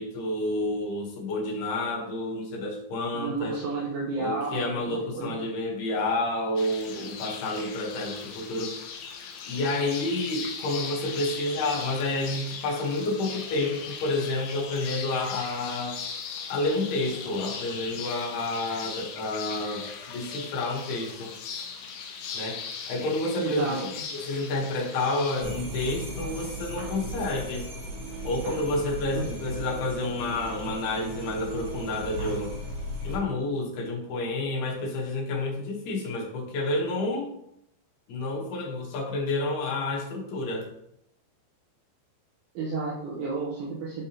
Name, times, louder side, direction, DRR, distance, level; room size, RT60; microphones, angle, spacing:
voice 1, 0.0-3.6 4.1-8.7 9.5-16.0 16.5-21.3 22.3-27.7 28.2-32.5 33.0-37.3 38.1-40.7, left 2 dB, 70° left, -3 dB, 2.8 m, -29 dB
voice 2, 3.1-5.3 23.4-24.0 29.1-29.3 42.5-44.1, right 3 dB, 80° right, -6 dB, 3.5 m, -32 dB
sound 1, 6.6-25.4, left 6 dB, 85° left, 2.2 m, -39 dB
sound 2, 25.4-33.2, right 1 dB, 45° right, 2.4 m, -36 dB
10.5 x 3.6 x 2.9 m, 0.77 s
omnidirectional pair, 5.4 m